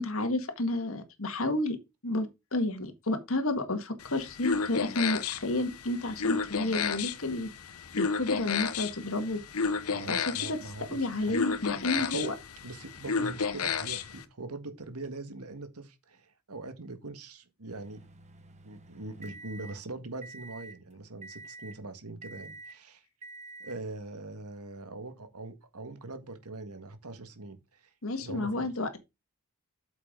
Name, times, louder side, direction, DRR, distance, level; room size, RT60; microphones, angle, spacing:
voice 1, 0.0-1.8 2.0-7.5 8.0-9.4 10.1-10.6 10.9-12.3 28.0-29.0, left 2 dB, 65° left, 1.8 m, -31 dB
sound 1, 4.0-14.2, left 5 dB, 80° left, 1.0 m, -32 dB
voice 2, 9.9-11.4 12.0-12.3 12.6-18.0 18.6-23.0 23.6-27.8 28.2-28.7, right 2 dB, 85° right, 1.7 m, -42 dB
sound 2, 17.7-19.8 20.2-20.8 21.2-21.8 22.2-22.8 23.2-23.8, right 3 dB, 30° right, 1.2 m, -48 dB
8.5 x 7.1 x 3.8 m
head